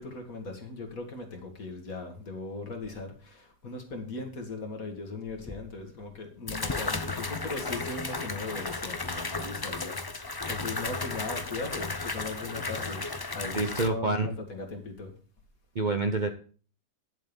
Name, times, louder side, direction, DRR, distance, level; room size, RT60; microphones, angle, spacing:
voice 1, 0.0-10.0 10.5-13.1 13.3-15.1, left 3 dB, 55° left, 3 dB, 2.5 m, -38 dB
sound 1, 5.5-5.6 6.5-13.9, left 3 dB, 35° left, 0.3 m, -34 dB
voice 2, 13.5-14.3 15.7-16.3, right 3 dB, 40° right, 6 dB, 0.7 m, -27 dB
10.5 x 7.6 x 5.3 m, 0.41 s
omnidirectional pair, 1.7 m